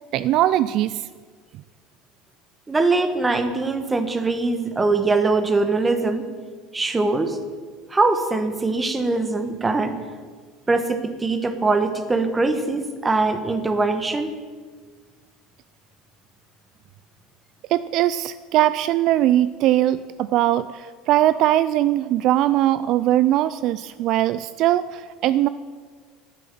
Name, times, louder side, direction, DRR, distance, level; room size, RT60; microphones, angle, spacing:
voice 1, 0.1-1.1 17.7-25.5, right 13 dB, 55° right, 15 dB, 0.3 m, -20 dB
voice 2, 2.7-6.3 6.7-7.4 7.9-10.0 10.7-14.3, right 3 dB, 15° right, 9 dB, 1.2 m, -22 dB
11.5 x 9.3 x 7.5 m, 1.6 s
supercardioid pair, 125°, 0 cm